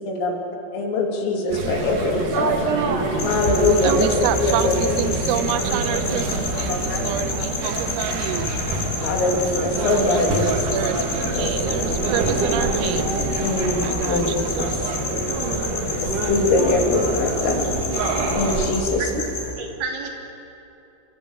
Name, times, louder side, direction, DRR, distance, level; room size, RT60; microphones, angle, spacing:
voice 1, 0.1-0.4 0.7-2.5 3.2-5.0 6.0-6.1 6.7-7.3 9.0-10.5 11.4-11.5 13.4-14.3 14.6-14.7 16.3-17.6 18.3-19.1, left 2 dB, 80° left, 1 dB, 5.6 m, -22 dB
sound 1, 1.5-18.7, right 2 dB, 45° right, 3.6 m, -26 dB
voice 2, 2.3-3.1 3.9-4.0 7.1-7.2 15.1-15.6 19.0-19.3 19.6-20.1, right 6 dB, 65° right, 1 dB, 5.0 m, -27 dB
sound 2, 3.2-19.5, left 3 dB, 45° left, 5.9 m, -30 dB
voice 3, 3.8-8.5 9.8-13.1 13.8-15.0, right 11 dB, 90° right, 10 dB, 3.7 m, -29 dB
29.0 x 25.0 x 8.3 m, 2.8 s
omnidirectional pair, 5.9 m